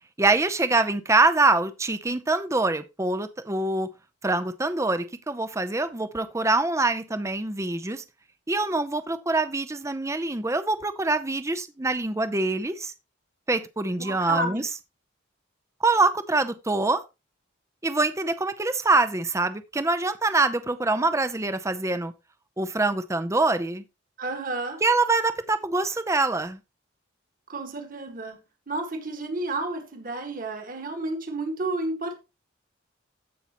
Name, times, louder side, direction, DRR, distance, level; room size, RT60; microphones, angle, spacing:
voice 1, 0.2-3.9 4.2-8.0 8.5-12.9 13.5-14.6 15.8-17.0 17.8-22.1 22.6-23.8 24.8-26.6, right 3 dB, 15° right, 0.6 m, -24 dB
voice 2, 14.0-14.6 24.2-24.8 27.5-28.4 28.7-32.2, right 2 dB, 45° right, 1.7 m, -31 dB
15.5 x 5.5 x 3.0 m
head